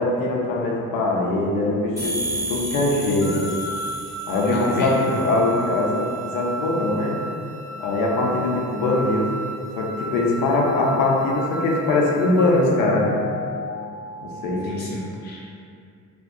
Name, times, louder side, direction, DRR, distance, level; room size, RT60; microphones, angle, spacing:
voice 1, 0.0-3.5 4.3-7.2 7.8-9.3 9.7-13.2 14.2-14.6, left 2 dB, 85° left, -2 dB, 0.5 m, -22 dB
sound 1, 2.0-5.5, right 1 dB, 10° right, 0.7 m, -32 dB
sound 2, 3.2-12.8, right 2 dB, 60° right, 0.4 m, -34 dB
voice 2, 4.4-4.9 14.6-15.5, left 2 dB, 30° left, -5 dB, 0.4 m, -30 dB
sound 3, 8.7-14.7, left 4 dB, 40° right, 0.9 m, -37 dB
2.5 x 2.1 x 2.4 m, 2.4 s
cardioid pair, 160°, 33 cm